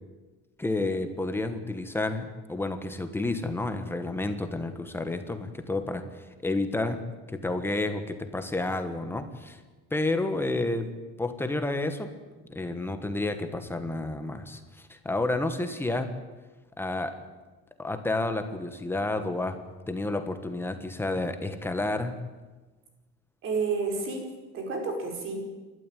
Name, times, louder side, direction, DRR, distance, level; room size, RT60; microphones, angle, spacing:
voice 1, 0.6-7.0 7.3-9.6 9.9-10.9 11.2-12.1 12.5-16.1 16.8-17.2 17.8-19.6 19.9-22.2, left 2 dB, 5° left, 8 dB, 1.3 m, -30 dB
voice 2, 23.4-25.5, right 4 dB, 45° right, 3 dB, 5.0 m, -31 dB
28.0 x 12.5 x 9.1 m, 1.2 s
cardioid pair, 175°, 30 cm